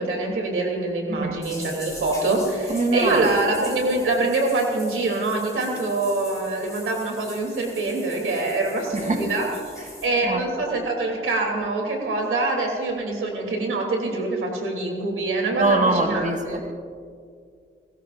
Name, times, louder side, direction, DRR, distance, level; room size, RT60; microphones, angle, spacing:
voice 1, 0.0-9.5 10.0-16.6, right 2 dB, 90° right, 1 dB, 3.1 m, -25 dB
voice 2, 1.1-1.4 2.7-3.2 8.9-9.2 10.2-10.4 15.6-16.4, right 2 dB, 35° right, 2 dB, 1.7 m, -22 dB
sound 1, 1.4-10.1, left 1 dB, 15° left, 3.6 m, -42 dB
29.5 x 14.0 x 2.6 m, 2.2 s
cardioid pair, 65°, 21 cm